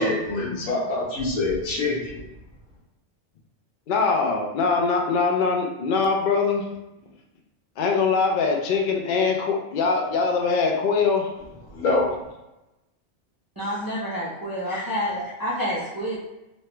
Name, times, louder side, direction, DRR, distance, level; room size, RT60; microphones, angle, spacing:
voice 1, 0.0-2.2 11.7-12.1, left 2 dB, 90° left, -4 dB, 1.3 m, -25 dB
voice 2, 3.9-6.6 7.8-11.3, left 4 dB, 55° left, 1 dB, 0.5 m, -22 dB
voice 3, 13.6-16.2, equal, 30° right, -7 dB, 0.4 m, -28 dB
3.1 x 2.2 x 3.0 m, 0.95 s
omnidirectional pair, 1.3 m